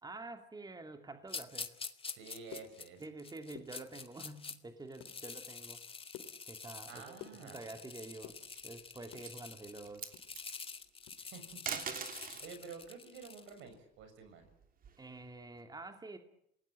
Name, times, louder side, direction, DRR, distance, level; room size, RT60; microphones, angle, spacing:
voice 1, 0.0-1.8 3.0-5.8 6.4-7.2 7.4-8.4 8.6-10.1 15.0-16.2, right 2 dB, 20° right, 6 dB, 2.7 m, -48 dB
sound 1, 1.3-4.6 4.9-13.6, left 5 dB, 30° left, 2.2 m, -47 dB
voice 2, 2.1-3.0 6.9-7.7 11.2-14.5, right 5 dB, 75° right, 7 dB, 6.9 m, -51 dB
sound 2, 2.5-3.2 3.4-4.3 4.7-5.2 5.6-7.8 8.1-9.3 9.7-11.2 11.5-11.6 12.0-12.2 12.6-12.8, left 11 dB, 85° left, 2.7 m, -53 dB
sound 3, 8.3-8.8 9.1-9.4 9.8-10.5 11.5-12.5 14.0-15.2, right 7 dB, 45° right, 2.9 m, -42 dB
27.5 x 19.0 x 9.0 m, 0.75 s
supercardioid pair, 80°, 20 cm